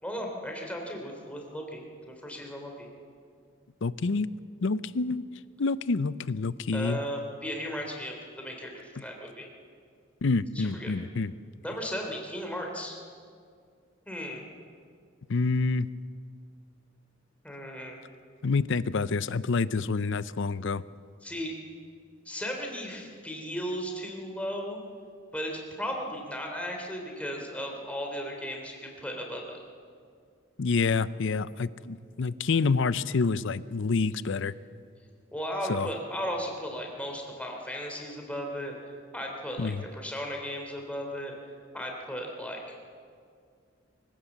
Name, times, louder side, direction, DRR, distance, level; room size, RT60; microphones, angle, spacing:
voice 1, 0.0-2.9 6.7-9.5 10.5-10.9 11.6-13.0 14.1-14.4 17.4-18.0 21.2-21.5 22.2-24.8 25.3-29.6 35.3-41.3 41.7-42.7, equal, 5° left, 1 dB, 3.3 m, -36 dB
voice 2, 3.8-4.3 4.6-5.3 5.6-7.0 10.2-11.3 15.3-15.9 18.4-20.8 30.6-34.5 35.7-35.9 39.6-39.8, left 4 dB, 65° left, 17 dB, 0.6 m, -27 dB
24.5 x 16.0 x 7.3 m, 2.2 s
head